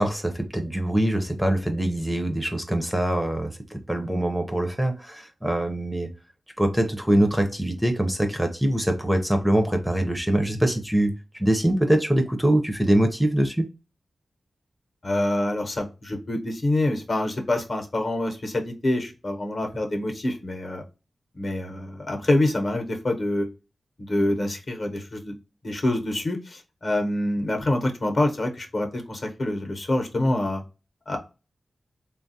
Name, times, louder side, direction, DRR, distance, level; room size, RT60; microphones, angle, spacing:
voice 1, 0.0-6.1 6.6-13.7, right 1 dB, 5° right, 5 dB, 0.5 m, -23 dB
voice 2, 15.0-20.8 21.3-23.5 24.1-25.3 25.6-30.6 31.1-31.2, left 1 dB, 50° left, 4 dB, 0.8 m, -26 dB
3.3 x 2.3 x 2.6 m, 0.30 s
wide cardioid pair, 90°, 0 cm